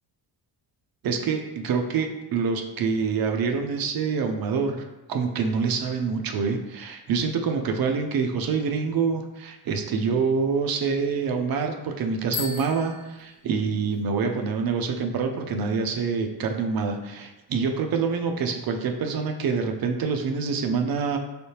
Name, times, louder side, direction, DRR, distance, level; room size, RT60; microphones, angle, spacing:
voice 1, 1.0-4.8 5.1-21.2, right 5 dB, 55° right, 4 dB, 0.5 m, -26 dB
Bicycle bell, 12.2-14.0, left 6 dB, 55° left, 1.1 m, -37 dB
4.5 x 3.4 x 2.8 m, 1.0 s
wide cardioid pair, 170°, 44 cm